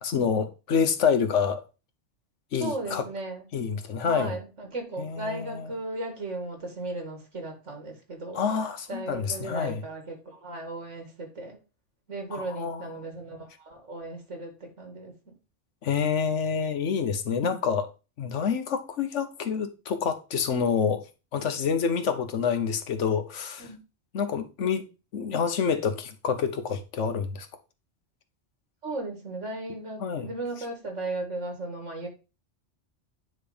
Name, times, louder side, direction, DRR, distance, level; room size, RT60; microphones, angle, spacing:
voice 1, 0.0-1.6 2.5-3.0 3.5-4.3 5.0-5.7 8.3-9.8 12.3-13.1 15.8-17.9 18.2-21.0 21.3-23.7 24.1-24.9 25.1-27.5 30.0-30.3, left 6 dB, 80° left, 1.3 m, -27 dB
voice 2, 2.6-3.4 4.0-8.4 8.9-11.6 12.1-15.4 23.6-23.8 28.8-32.1, right 2 dB, 90° right, 2.2 m, -36 dB
9.5 x 3.3 x 5.1 m
omnidirectional pair, 1.2 m